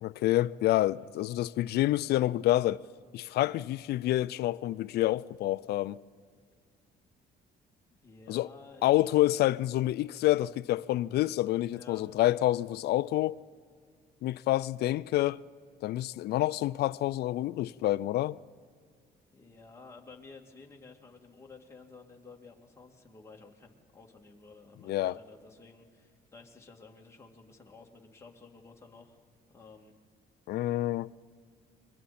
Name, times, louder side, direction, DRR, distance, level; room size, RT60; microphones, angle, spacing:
voice 1, 0.0-2.8 3.1-6.0 8.3-8.5 8.8-13.4 14.2-15.4 15.8-18.4 24.8-25.2 30.5-31.1, left 15 dB, 70° left, 0.4 m, -28 dB
voice 2, 7.9-8.9 11.7-12.0 19.3-29.2 29.5-29.9, left 4 dB, 15° left, 2.4 m, -53 dB
30.0 x 23.0 x 4.3 m
cardioid pair, 115°, 17 cm